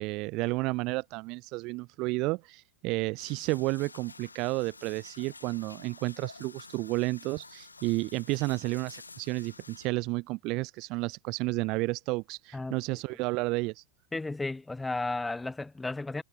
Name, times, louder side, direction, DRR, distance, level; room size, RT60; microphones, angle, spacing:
voice 1, 0.0-13.8, right 24 dB, 40° right, 0.4 m, -31 dB
sound 1, 3.2-9.9, left 3 dB, 80° left, 1.8 m, -50 dB
voice 2, 14.1-16.2, left 2 dB, 10° left, 1.2 m, -33 dB
figure-of-eight pair, 90°, 0 cm